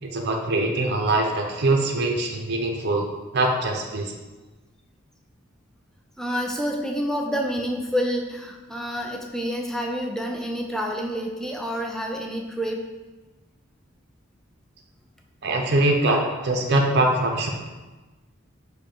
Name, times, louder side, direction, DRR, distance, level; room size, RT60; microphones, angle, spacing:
voice 1, 0.0-3.1 3.3-4.1 15.4-17.5, right 2 dB, 55° right, 1 dB, 0.6 m, -23 dB
voice 2, 6.2-12.8, equal, 5° left, 0 dB, 0.4 m, -28 dB
5.2 x 2.2 x 4.4 m, 1.2 s
head